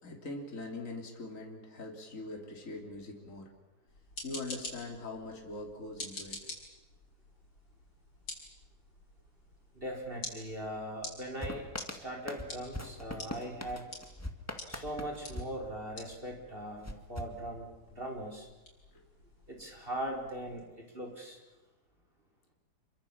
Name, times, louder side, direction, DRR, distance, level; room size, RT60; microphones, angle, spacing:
voice 1, 0.0-3.5 4.2-6.4, left 2 dB, 40° left, 1 dB, 3.7 m, -42 dB
sound 1, 3.9-20.7, left 2 dB, 75° left, 6.5 m, -49 dB
voice 2, 9.7-13.8 14.7-18.5 19.5-21.4, right 1 dB, 25° right, 0 dB, 5.0 m, -40 dB
sound 2, 11.4-16.3 16.8-18.1, left 1 dB, 10° left, 1.9 m, -43 dB
27.5 x 24.5 x 7.3 m, 1.1 s
omnidirectional pair, 2.2 m